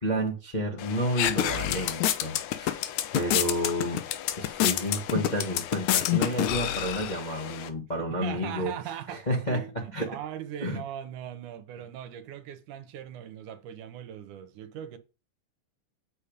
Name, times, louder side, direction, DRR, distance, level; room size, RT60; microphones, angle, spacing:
voice 1, 0.0-2.8 3.1-4.0 4.4-8.7 9.1-10.1 10.6-10.8, equal, 25° left, 1.1 m, -30 dB
sound 1, 0.8-7.7, left 12 dB, 80° left, 2.2 m, -29 dB
voice 2, 8.0-15.0, right 10 dB, 80° right, 2.4 m, -40 dB
8.4 x 5.1 x 5.1 m
omnidirectional pair, 3.6 m